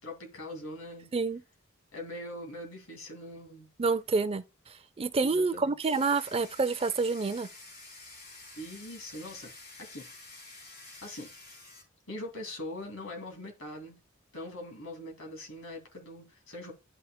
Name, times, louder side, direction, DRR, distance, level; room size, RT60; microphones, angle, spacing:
voice 1, 0.0-1.1 1.9-3.7 5.2-5.7 8.6-10.1 10.5-10.6 11.0-11.3 12.1-14.0 14.3-16.7, left 1 dB, 70° left, 2.4 m, -42 dB
voice 2, 3.8-4.4 5.0-7.5, right 4 dB, 30° right, 0.4 m, -28 dB
Domestic sounds home sounds, 5.8-11.8, left 2 dB, 55° left, 3.7 m, -50 dB
11.0 x 5.6 x 2.2 m
head